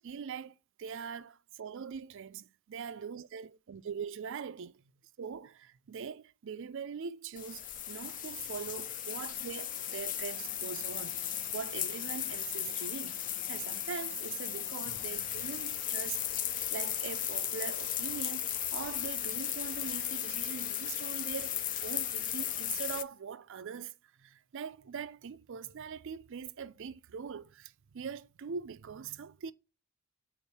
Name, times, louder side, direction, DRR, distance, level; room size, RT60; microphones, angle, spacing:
voice 1, 0.0-4.8 5.2-13.2 13.5-16.3 16.7-29.5, right 6 dB, 55° right, 0.4 m, -42 dB
sound 1, 7.4-23.0, left 10 dB, 35° left, 0.4 m, -36 dB
7.1 x 4.2 x 4.1 m
head